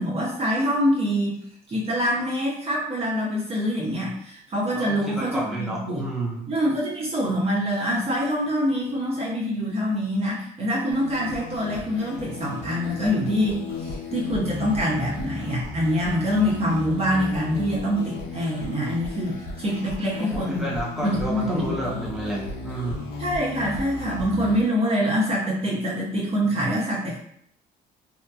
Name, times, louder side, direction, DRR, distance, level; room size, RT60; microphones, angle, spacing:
voice 1, 0.0-1.4 1.7-6.0 6.5-20.7 21.0-21.8 23.2-27.2, equal, 35° right, -4 dB, 0.7 m, -25 dB
voice 2, 4.7-6.5 20.2-23.1, right 1 dB, ahead, -5 dB, 0.7 m, -31 dB
sound 1, 10.9-24.6, left 3 dB, 75° left, 0.5 m, -35 dB
2.8 x 2.4 x 2.2 m, 0.68 s
cardioid pair, 110°, 17 cm